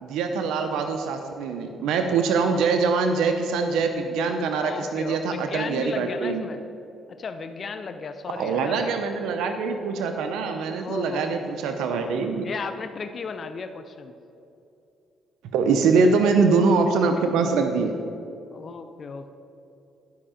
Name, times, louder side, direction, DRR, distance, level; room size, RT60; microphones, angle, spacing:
voice 1, 0.0-6.5 8.4-12.4 15.5-17.9, right 4 dB, 90° right, 6 dB, 0.6 m, -23 dB
voice 2, 4.6-6.6 7.1-9.1 10.6-11.4 12.4-14.1 16.0-16.1 18.5-19.3, left 5 dB, 50° left, 9 dB, 0.5 m, -35 dB
11.5 x 5.5 x 5.0 m, 2.7 s
cardioid pair, 90°, 0 cm